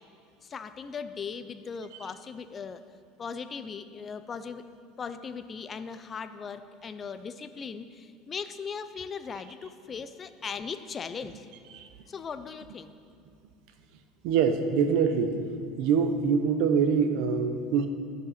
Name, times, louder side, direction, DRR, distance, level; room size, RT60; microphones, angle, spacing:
voice 1, 0.4-2.8 3.2-4.7 5.0-11.5 12.1-12.9, left 6 dB, 20° left, 11 dB, 0.3 m, -38 dB
voice 2, 14.2-15.3 15.8-17.9, right 6 dB, 55° right, 8 dB, 0.7 m, -24 dB
12.5 x 4.9 x 5.7 m, 2.5 s
cardioid pair, 175°, 0 cm